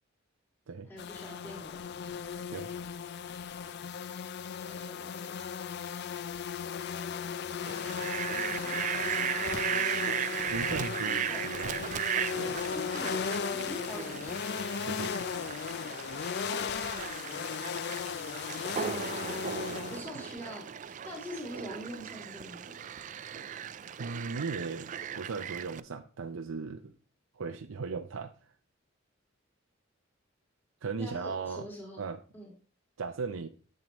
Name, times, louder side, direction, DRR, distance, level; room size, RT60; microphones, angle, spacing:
voice 1, 0.8-1.9 4.6-5.4 8.3-10.2 11.1-11.4 12.7-13.1 13.5-14.4 19.9-22.7 31.0-32.0 32.3-32.5, left 1 dB, 10° left, -3 dB, 2.1 m, -44 dB
sound 1, 1.0-20.0, left 6 dB, 55° left, 0.4 m, -36 dB
Fowl, 7.7-25.8, right 9 dB, 40° right, 0.3 m, -37 dB
voice 2, 10.5-11.8 12.4-12.6 14.8-15.3 24.0-26.9 27.3-28.3 30.8-31.7 32.0-32.2 33.0-33.5, right 4 dB, 85° right, 5 dB, 0.6 m, -37 dB
10.5 x 7.5 x 3.0 m, 0.40 s
head